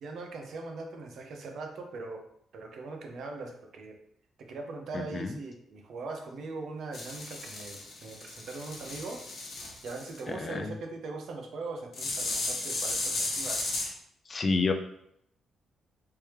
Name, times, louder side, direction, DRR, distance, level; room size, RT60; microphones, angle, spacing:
voice 1, 0.0-2.3 2.5-4.0 4.4-9.3 9.8-13.6, right 3 dB, 70° right, 2 dB, 0.7 m, -40 dB
voice 2, 4.9-5.4 10.3-10.7 14.3-14.7, left 3 dB, 35° left, 6 dB, 0.4 m, -29 dB
sound 1, 6.9-10.2 11.9-13.9, left 2 dB, 60° left, 0.9 m, -34 dB
3.4 x 3.1 x 3.1 m, 0.72 s
cardioid pair, 110°, 0 cm